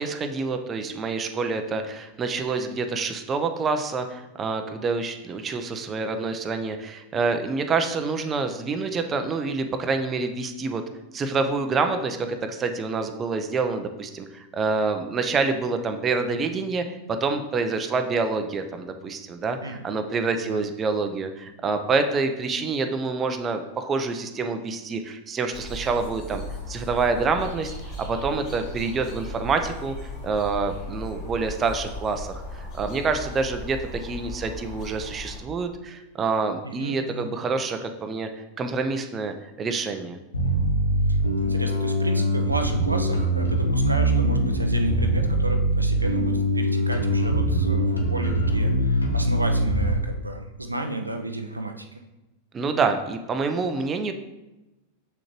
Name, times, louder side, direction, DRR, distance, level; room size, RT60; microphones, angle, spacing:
voice 1, 0.0-10.8 11.1-27.7 28.0-38.3 38.6-40.2 52.5-54.1, right 4 dB, 25° right, 6 dB, 0.7 m, -27 dB
sound 1, 25.5-35.4, left 1 dB, 40° left, 2.4 m, -37 dB
voice 2, 36.6-37.3 41.4-51.9, right 2 dB, 85° right, 5 dB, 0.6 m, -32 dB
Bass guitar, 40.3-49.9, right 1 dB, 80° left, 1.1 m, -23 dB
7.1 x 6.3 x 3.1 m, 1.0 s
figure-of-eight pair, 90°, 0 cm